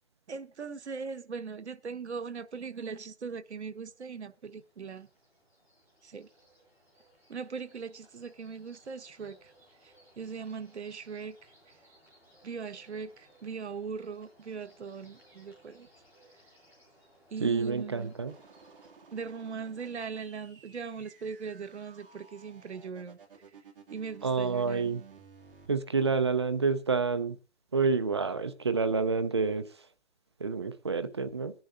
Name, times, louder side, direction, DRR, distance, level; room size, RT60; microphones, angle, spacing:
voice 1, 0.3-5.1 6.0-6.3 7.3-9.5 9.8-11.5 12.4-15.9 17.3-18.1 19.1-23.2 23.9-24.9, right 5 dB, 85° right, 1.2 m, -40 dB
sound 1, 3.5-18.9, equal, 5° right, 5.2 m, -63 dB
voice 2, 17.4-18.3 24.2-25.0 25.7-27.4 27.7-29.7 30.4-31.5, right 4 dB, 25° right, 0.5 m, -28 dB
sound 2, 18.3-25.7, right 6 dB, 55° right, 2.2 m, -55 dB
20.5 x 10.5 x 2.6 m
hypercardioid pair, 165°, 33 cm